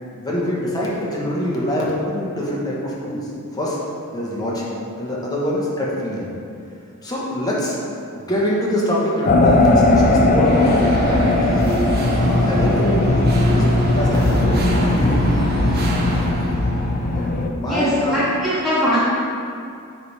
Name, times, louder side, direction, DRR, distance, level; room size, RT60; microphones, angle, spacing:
voice 1, 0.2-3.8 4.1-4.7 5.0-6.3 7.0-7.8 8.1-11.7 12.1-15.2 17.1-18.2, left 1 dB, 15° left, -5 dB, 1.2 m, -24 dB
sound 1, 9.3-17.5, left 2 dB, 40° left, 0.5 m, -18 dB
sound 2, 10.4-17.5, right 1 dB, 45° right, 0.7 m, -25 dB
voice 2, 17.6-19.0, equal, ahead, -10 dB, 0.8 m, -21 dB
9.4 x 3.4 x 4.2 m, 2.5 s
head